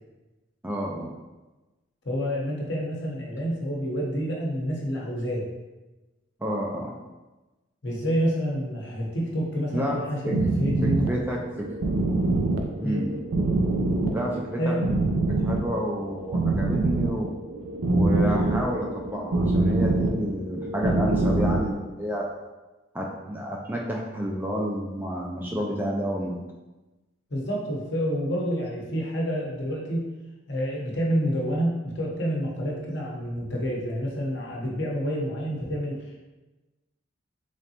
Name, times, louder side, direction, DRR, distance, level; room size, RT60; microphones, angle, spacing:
voice 1, 0.6-1.1 6.4-6.9 9.7-10.0 10.2-10.4 10.8-11.7 12.8-13.1 14.1-14.8 15.4-17.3 17.9-22.3 22.9-26.4, equal, 10° right, -2 dB, 0.3 m, -30 dB
voice 2, 2.0-5.5 7.8-11.1 12.8-13.0 14.6-14.9 27.3-30.1 30.5-36.0, equal, 60° left, -3 dB, 0.9 m, -28 dB
sound 1, 10.3-21.7, right 2 dB, 90° right, 0.5 m, -25 dB
3.8 x 3.3 x 2.8 m, 1.1 s
head